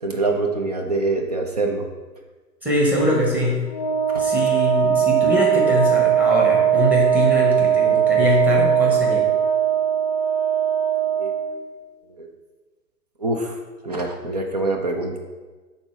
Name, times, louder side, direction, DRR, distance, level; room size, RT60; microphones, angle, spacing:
voice 1, 0.0-1.9 4.1-4.3 11.2-11.3 12.1-12.3 13.2-13.6 13.8-15.2, right 2 dB, 30° right, 2 dB, 0.4 m, -24 dB
voice 2, 2.6-3.7 4.2-9.3, left 1 dB, 5° right, -3 dB, 1.1 m, -22 dB
Wind instrument woodwind instrument, 3.7-11.5, right 9 dB, 25° left, 0.6 m, -19 dB
5.2 x 4.1 x 5.9 m, 1.3 s
figure-of-eight pair, 115°, 48 cm